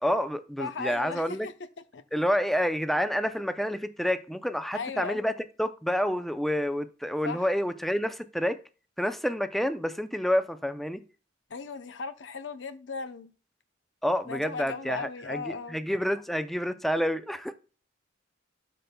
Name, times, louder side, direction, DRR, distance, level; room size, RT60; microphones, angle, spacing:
voice 1, 0.0-1.5 2.1-5.3 5.6-8.6 9.0-11.0 14.0-17.5, equal, ahead, 0.4 m, -28 dB
voice 2, 0.6-1.5 1.9-2.0 4.7-5.3 7.2-7.5 11.5-13.3 14.3-15.8, left 4 dB, 80° left, 0.7 m, -37 dB
12.0 x 5.2 x 2.2 m
head